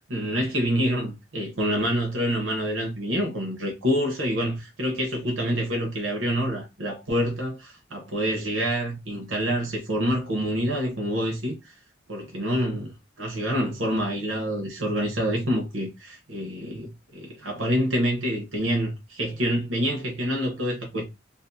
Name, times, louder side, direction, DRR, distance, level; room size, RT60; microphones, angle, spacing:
voice 1, 0.1-11.7 12.1-21.1, equal, 90° right, 0.8 m, -27 dB
2.5 x 2.5 x 2.5 m
head